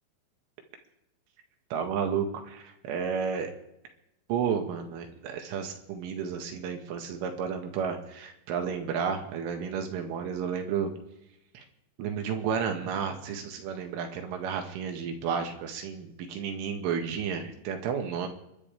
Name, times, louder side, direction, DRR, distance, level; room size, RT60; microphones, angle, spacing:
voice 1, 1.7-3.5 4.3-10.9 11.5-11.6 12.0-18.3, right 7 dB, 80° right, 4 dB, 4.2 m, -32 dB
29.0 x 12.5 x 3.5 m, 0.84 s
omnidirectional pair, 5.7 m